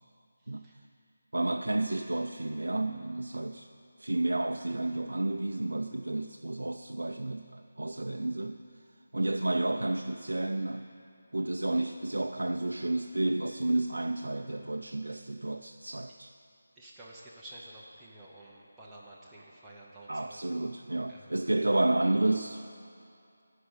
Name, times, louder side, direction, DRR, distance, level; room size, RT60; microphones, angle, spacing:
voice 1, 0.4-0.8 15.1-15.2 16.1-16.2 16.8-20.4 21.1-21.4, right 1 dB, 5° right, -8 dB, 0.8 m, -51 dB
voice 2, 1.3-3.7 4.0-8.6 9.1-10.9 11.3-16.3 20.1-22.6, right 2 dB, 90° right, 5 dB, 0.4 m, -31 dB
12.0 x 4.9 x 8.1 m, 2.5 s
figure-of-eight pair, 165°, 0 cm